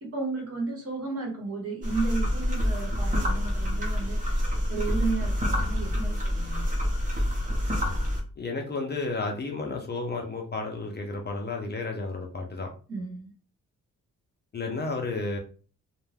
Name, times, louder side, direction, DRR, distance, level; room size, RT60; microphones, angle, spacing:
voice 1, 0.0-4.3 4.7-6.7 12.9-13.3, right 3 dB, 45° right, -1 dB, 1.0 m, -33 dB
sound 1, 1.8-8.2, equal, 25° right, 0.7 m, -27 dB
voice 2, 8.4-12.7 14.5-15.4, left 3 dB, 35° left, 2 dB, 0.4 m, -32 dB
2.4 x 2.2 x 3.3 m, 0.38 s
wide cardioid pair, 175°, 32 cm